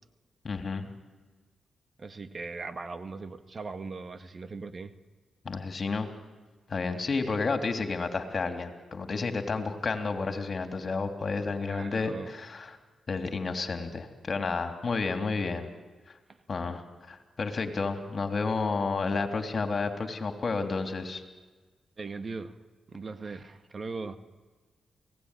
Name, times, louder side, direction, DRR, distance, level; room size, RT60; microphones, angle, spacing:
voice 1, 0.4-0.9 5.4-6.1 6.7-12.8 13.1-15.7 16.5-21.2, left 4 dB, 50° left, 6 dB, 3.2 m, -31 dB
voice 2, 2.0-4.9 7.2-7.3 11.7-12.3 22.0-22.5 22.9-24.2, right 4 dB, 45° right, 10 dB, 1.7 m, -39 dB
28.5 x 18.0 x 9.9 m, 1.4 s
cardioid pair, 55°, 0 cm